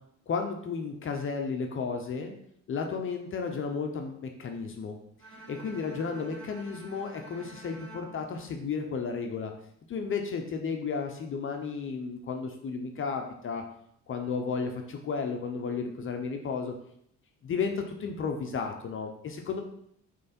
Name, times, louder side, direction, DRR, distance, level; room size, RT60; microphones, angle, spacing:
voice 1, 0.3-2.3 2.7-5.0 5.5-9.5 9.9-13.6 14.1-16.7 17.4-19.6, left 5 dB, 40° left, 4 dB, 0.8 m, -33 dB
Bowed string instrument, 5.2-9.4, right 2 dB, 45° right, 1.9 m, -49 dB
7.5 x 3.3 x 4.3 m, 0.69 s
cardioid pair, 130°, 31 cm